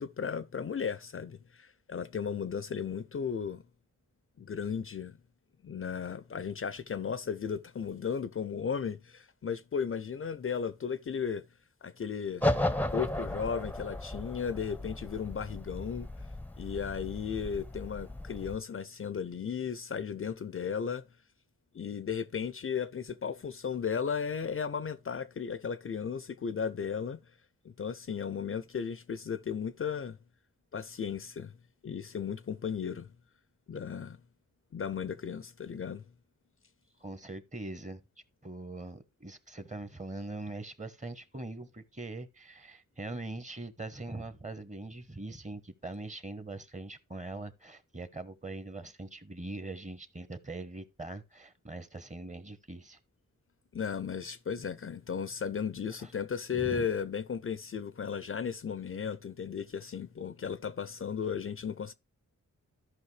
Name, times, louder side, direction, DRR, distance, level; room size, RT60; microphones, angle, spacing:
voice 1, 0.0-3.6 4.4-5.2 5.6-11.4 11.8-12.4 12.9-16.1 16.6-21.0 21.7-27.2 27.6-30.2 30.7-31.5 31.8-33.1 33.7-34.2 34.7-36.0 53.7-61.9, left 7 dB, 45° left, 0.5 m, -35 dB
sound 1, 12.4-18.6, left 1 dB, 5° left, 0.7 m, -35 dB
voice 2, 37.0-38.0 38.4-53.0 56.0-56.1 56.5-56.9, right 2 dB, 25° right, 1.0 m, -42 dB
13.5 x 5.4 x 3.3 m
cardioid pair, 55°, 31 cm